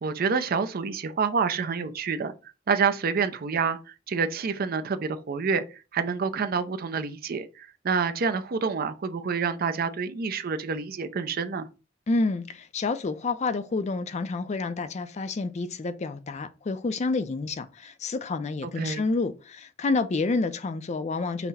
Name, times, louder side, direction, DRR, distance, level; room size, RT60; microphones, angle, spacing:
voice 1, 0.0-2.3 2.7-11.7 18.6-19.0, right 5 dB, 50° right, 0.5 m, -28 dB
voice 2, 12.1-21.5, left 3 dB, 35° left, 0.4 m, -29 dB
5.7 x 2.1 x 4.0 m
head